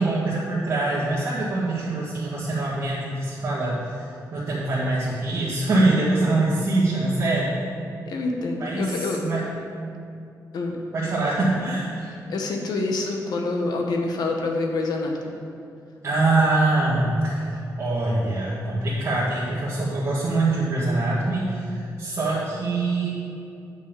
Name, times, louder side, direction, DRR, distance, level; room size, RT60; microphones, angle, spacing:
voice 1, 0.0-7.5 8.6-9.5 10.9-12.1 16.0-23.1, right 2 dB, 45° right, -9 dB, 2.1 m, -24 dB
voice 2, 8.0-9.2 10.5-10.8 12.3-15.4, left 3 dB, 75° left, 2 dB, 1.4 m, -26 dB
9.4 x 5.5 x 7.6 m, 2.6 s
wide cardioid pair, 165°, 7 cm